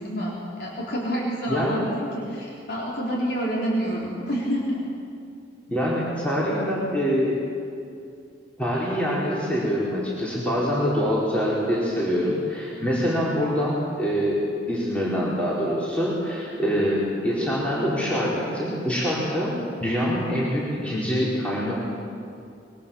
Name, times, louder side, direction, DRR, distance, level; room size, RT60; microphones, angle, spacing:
voice 1, 0.0-4.9, equal, 65° left, -4 dB, 3.9 m, -28 dB
voice 2, 1.5-1.8 5.7-7.3 8.6-19.5 19.8-21.7, equal, 5° left, -7 dB, 4.3 m, -25 dB
24.0 x 22.5 x 7.1 m, 2.5 s
head